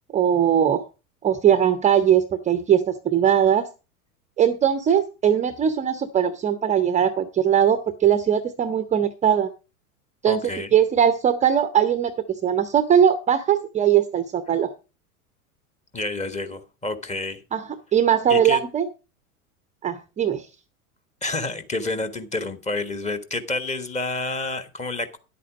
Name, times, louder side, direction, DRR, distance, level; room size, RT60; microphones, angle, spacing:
voice 1, 0.1-0.9 1.2-3.7 4.4-9.5 10.2-14.7 17.5-18.9 19.8-20.5, right 9 dB, 15° right, 12 dB, 0.7 m, -20 dB
voice 2, 10.3-10.8 15.9-17.4 18.3-18.6 21.2-25.2, left 2 dB, 15° left, 9 dB, 1.4 m, -29 dB
10.5 x 8.4 x 5.1 m, 0.31 s
figure-of-eight pair, 95°, 44 cm